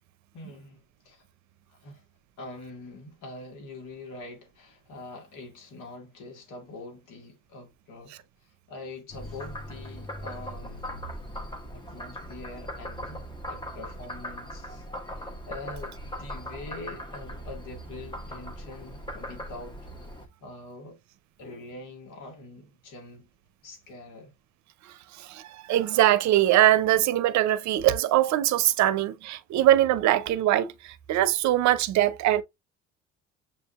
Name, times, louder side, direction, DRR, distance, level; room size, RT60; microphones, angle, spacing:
voice 1, 0.3-1.2 1.7-2.0 2.4-8.1 8.4-10.9 11.5-13.2 13.5-14.9 15.1-19.8 20.4-21.0 21.4-23.3 23.6-24.3, left 2 dB, 75° left, 2.0 m, -44 dB
Frog, 9.1-20.3, equal, 15° left, 1.0 m, -39 dB
voice 2, 24.8-32.4, right 13 dB, 60° right, 0.6 m, -22 dB
7.3 x 2.7 x 2.4 m
supercardioid pair, 85°, 32 cm